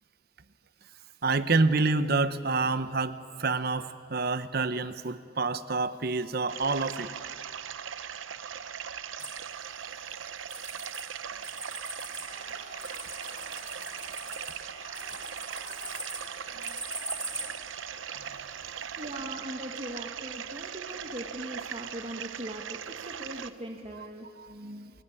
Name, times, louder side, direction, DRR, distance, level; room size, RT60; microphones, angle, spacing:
voice 1, 1.2-7.1 17.4-17.5 18.2-18.3 24.4-24.9, right 3 dB, 50° right, 12 dB, 0.9 m, -28 dB
sound 1, 6.5-23.5, right 8 dB, 85° right, 0.8 m, -39 dB
sound 2, 9.2-11.0 11.3-17.4, right 2 dB, 5° right, 2.4 m, -41 dB
sound 3, 12.2-19.0, left 1 dB, 40° left, 3.5 m, -51 dB
voice 2, 19.0-24.3, right 1 dB, 30° right, 2 dB, 1.4 m, -40 dB
28.0 x 14.5 x 9.8 m, 2.4 s
head